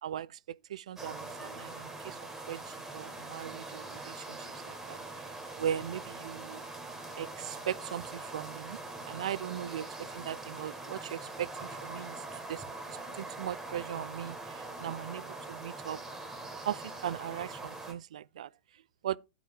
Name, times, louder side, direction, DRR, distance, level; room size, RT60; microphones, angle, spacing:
voice 1, 0.0-2.2 2.5-5.0 5.6-6.6 7.2-8.8 9.1-16.0 16.6-18.5 19.0-19.2, right 10 dB, 70° right, 0.3 m, -39 dB
sound 1, 1.0-17.9, right 2 dB, 10° right, 1.8 m, -43 dB
11.5 x 4.7 x 3.7 m
hypercardioid pair, 110°, 4 cm